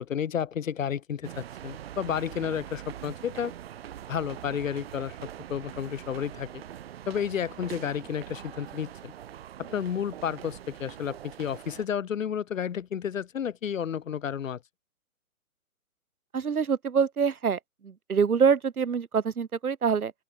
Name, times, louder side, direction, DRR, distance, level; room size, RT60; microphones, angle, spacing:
voice 1, 0.0-3.5 4.1-5.2 5.5-6.6 7.1-9.1 9.6-14.6, left 8 dB, 65° left, 1.5 m, -31 dB
sound 1, 1.2-11.9, right 11 dB, 45° right, 3.9 m, -43 dB
voice 2, 16.3-17.6 17.8-20.1, right 6 dB, 85° right, 2.6 m, -25 dB
open air
hypercardioid pair, 155°, 43 cm